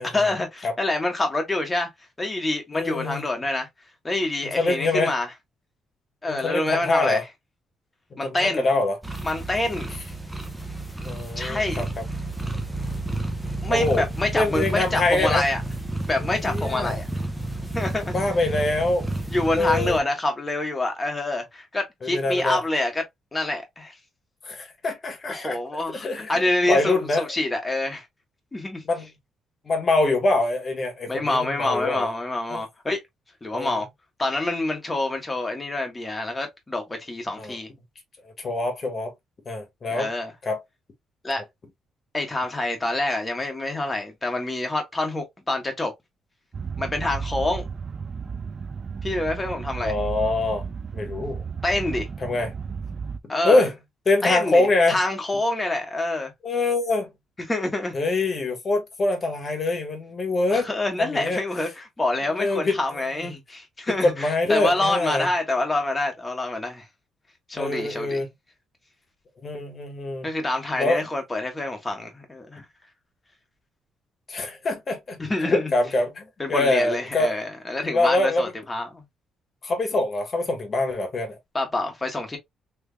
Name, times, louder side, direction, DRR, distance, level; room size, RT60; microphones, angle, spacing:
voice 1, 0.1-1.9 2.2-3.7 4.0-5.3 6.2-7.3 8.2-8.7 9.2-10.0 11.3-11.9 13.6-15.6 16.0-17.1 17.7-18.2 19.3-23.0 23.3-23.9 25.3-28.1 28.5-28.8 31.1-33.0 33.4-33.9 34.2-37.7 39.9-40.3 41.2-41.4 42.1-45.9 46.8-47.7 49.0-49.9 51.6-52.1 53.3-53.7 54.2-56.3 57.5-58.0 60.5-66.9 67.5-68.3 70.2-72.6 75.2-75.7 76.4-79.0 81.5-82.4, left 2 dB, 20° left, 1.5 m, -26 dB
voice 2, 2.7-3.2 4.4-5.1 6.3-7.2 8.1-9.0 11.0-11.9 13.7-14.0 14.3-15.4 16.4-17.0 18.1-19.1 19.5-20.0 22.0-22.6 24.4-25.6 25.9-27.3 28.8-29.1 29.6-32.1 32.5-32.6 33.5-33.8 37.4-37.6 38.4-39.1 39.4-40.1 40.4-40.6 49.8-50.7 50.9-51.4 52.2-52.5 53.4-53.7 54.1-55.0 56.4-57.1 57.9-60.7 61.0-61.4 62.4-62.8 64.0-65.3 67.5-68.3 69.4-70.3 70.8-71.0 74.3-77.4 77.9-78.5 79.6-81.4, left 2 dB, 40° left, 1.4 m, -24 dB
sound 1, 9.0-20.0, right 1 dB, 5° right, 0.9 m, -31 dB
sound 2, 46.5-53.2, right 5 dB, 40° right, 0.4 m, -33 dB
3.3 x 3.2 x 2.2 m
cardioid pair, 90°, 0 cm